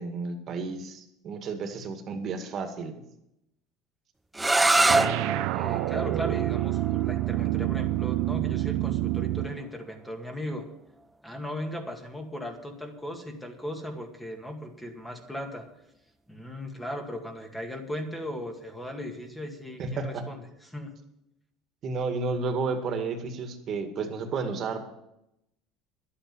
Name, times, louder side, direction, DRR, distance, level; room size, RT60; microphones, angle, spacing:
voice 1, 0.0-3.0 19.8-20.2 21.8-24.8, right 4 dB, 45° right, 6 dB, 2.0 m, -32 dB
sound 1, 4.3-10.1, right 2 dB, 10° right, 0.5 m, -28 dB
sound 2, 4.9-9.6, right 17 dB, 75° right, 0.4 m, -28 dB
voice 2, 5.5-10.7 11.2-15.7 16.3-20.9, left 1 dB, 5° left, 4 dB, 2.0 m, -37 dB
11.5 x 8.7 x 7.9 m, 0.83 s
supercardioid pair, 120°, 0 cm